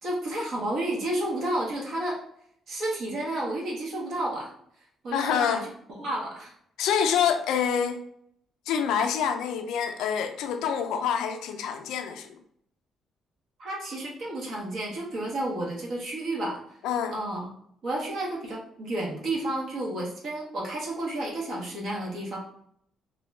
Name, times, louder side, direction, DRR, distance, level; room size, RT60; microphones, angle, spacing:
voice 1, 0.0-2.2 2.7-4.5 5.0-5.6 6.0-6.5 13.6-16.6 17.1-17.5 17.8-22.4, right 1 dB, 65° right, -3 dB, 0.8 m, -31 dB
voice 2, 5.1-5.7 6.8-8.0 8.7-12.4 16.8-17.1, left 7 dB, 85° left, 6 dB, 0.3 m, -26 dB
2.5 x 2.1 x 3.1 m, 0.68 s
cardioid pair, 85°, 0 cm